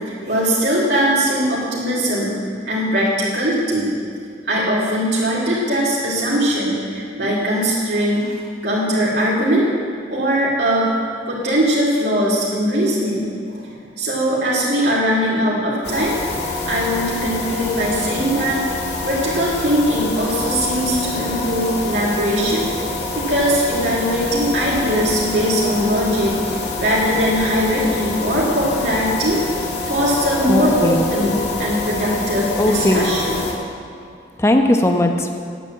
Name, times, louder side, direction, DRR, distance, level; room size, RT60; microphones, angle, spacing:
voice 1, 0.3-2.3 2.7-3.9 4.5-8.4 8.6-9.7 10.1-10.9 11.3-16.2 16.7-18.6 19.0-29.4 29.8-33.4, equal, 70° right, -7 dB, 2.5 m, -20 dB
sound 1, 15.8-33.5, left 3 dB, 65° left, 2.1 m, -26 dB
voice 2, 30.5-31.1 32.6-33.1 34.4-35.3, left 1 dB, 15° left, 4 dB, 0.8 m, -18 dB
10.0 x 7.9 x 8.7 m, 2.2 s
head